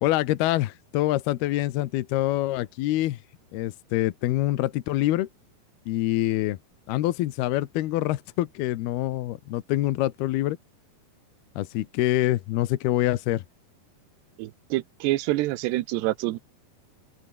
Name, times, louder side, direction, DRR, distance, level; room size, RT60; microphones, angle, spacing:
voice 1, 0.0-3.2 3.5-5.3 5.9-6.6 6.9-10.6 11.6-13.4, left 15 dB, 75° left, 2.9 m, -25 dB
voice 2, 14.4-16.4, right 17 dB, 90° right, 3.1 m, -27 dB
omnidirectional pair, 4.7 m